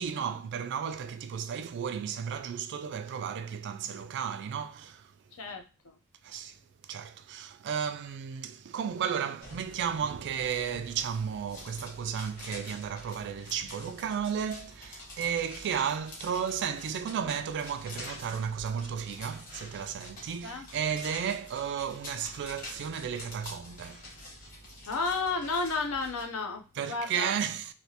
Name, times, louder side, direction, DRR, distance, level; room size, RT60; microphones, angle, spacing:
voice 1, 0.0-5.1 6.2-24.1 26.8-27.7, right 7 dB, 55° right, 0.3 m, -34 dB
voice 2, 5.3-6.0 13.2-13.5 20.4-20.7 24.9-27.3, left 4 dB, 70° left, 0.7 m, -33 dB
sound 1, 9.4-26.2, left 1 dB, 40° left, 1.3 m, -47 dB
3.2 x 2.8 x 2.8 m
head